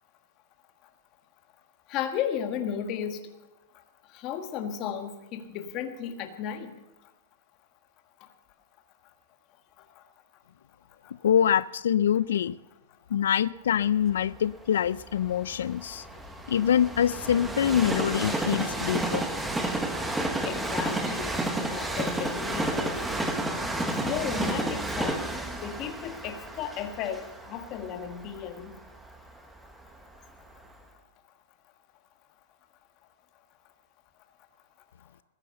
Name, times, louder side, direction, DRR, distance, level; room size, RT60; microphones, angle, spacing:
voice 1, 1.9-3.2 4.1-6.7 20.4-21.4 21.7-23.0 24.0-25.3 25.6-28.7, left 9 dB, 25° left, 7 dB, 1.4 m, -34 dB
voice 2, 11.2-12.6 13.1-16.1 16.5-19.2, left 9 dB, 80° left, 18 dB, 0.4 m, -25 dB
Train, 14.1-30.0 30.6-30.7, right 1 dB, 5° right, 1.1 m, -31 dB
20.5 x 9.8 x 6.7 m, 1.0 s
supercardioid pair, 180°, 0 cm